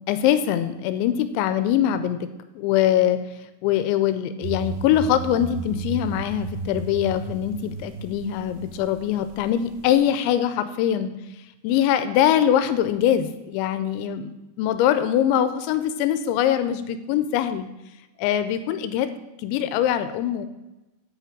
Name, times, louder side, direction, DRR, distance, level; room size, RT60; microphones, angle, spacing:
voice 1, 0.1-2.3 2.6-3.2 3.6-11.1 11.6-14.3 14.6-17.7 18.2-19.1 19.4-20.5, left 10 dB, 85° left, 10 dB, 2.9 m, -22 dB
sound 1, 4.4-9.9, right 4 dB, 75° right, 2.7 m, -34 dB
8.5 x 5.8 x 7.3 m, 1.0 s
omnidirectional pair, 5.2 m